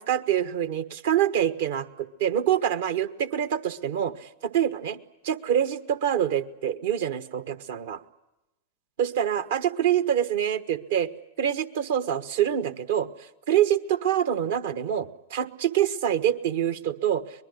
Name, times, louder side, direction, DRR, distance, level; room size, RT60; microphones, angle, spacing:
voice 1, 0.0-5.0 5.2-8.0 9.0-11.1 11.4-13.1 13.5-17.2, right 10 dB, 60° right, 13 dB, 1.3 m, -25 dB
23.5 x 21.0 x 9.7 m, 0.97 s
figure-of-eight pair, 95°, 0 cm